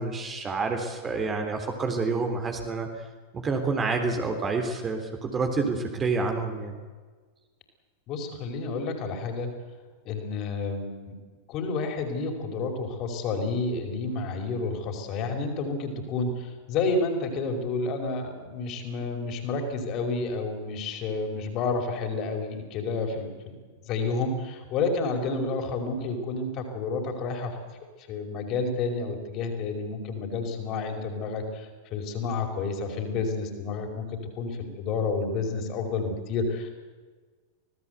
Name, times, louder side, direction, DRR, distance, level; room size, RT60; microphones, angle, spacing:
voice 1, 0.0-2.9 3.3-6.8, right 4 dB, 20° right, 4 dB, 3.4 m, -28 dB
voice 2, 8.1-9.5 10.0-11.2 11.5-23.6 23.9-27.6 28.1-34.1 34.4-36.7, left 3 dB, 40° left, 3 dB, 5.3 m, -30 dB
26.0 x 18.5 x 8.2 m, 1.4 s
figure-of-eight pair, 90°, 0 cm